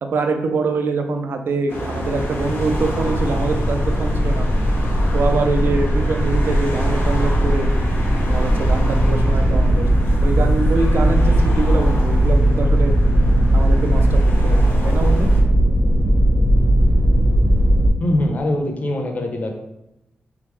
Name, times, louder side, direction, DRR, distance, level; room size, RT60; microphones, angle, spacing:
voice 1, 0.0-4.4 5.1-7.7 8.3-9.8 10.2-12.9 13.5-15.3, right 3 dB, 65° right, 5 dB, 0.5 m, -24 dB
sound 1, 1.7-15.4, left 1 dB, 90° left, 1.1 m, -31 dB
sound 2, 2.0-17.9, right 1 dB, 45° right, 1.0 m, -17 dB
voice 2, 18.0-19.5, left 1 dB, 40° left, 3 dB, 0.6 m, -22 dB
3.7 x 3.6 x 3.1 m, 0.91 s
wide cardioid pair, 160°, 4 cm